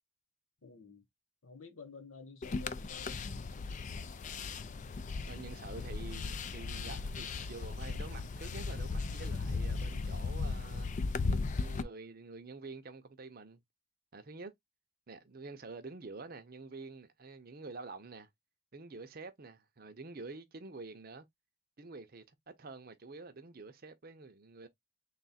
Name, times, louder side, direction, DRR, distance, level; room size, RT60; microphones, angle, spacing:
voice 1, 0.6-1.0 1.4-3.3, left 5 dB, 80° left, 0.9 m, -51 dB
sound 1, 2.4-11.8, left 4 dB, 35° left, 0.3 m, -37 dB
voice 2, 5.2-10.9 11.3-13.6 14.1-14.5 15.1-18.3 18.7-21.3 21.8-24.7, right 3 dB, 45° right, 0.6 m, -48 dB
3.5 x 2.3 x 4.1 m
head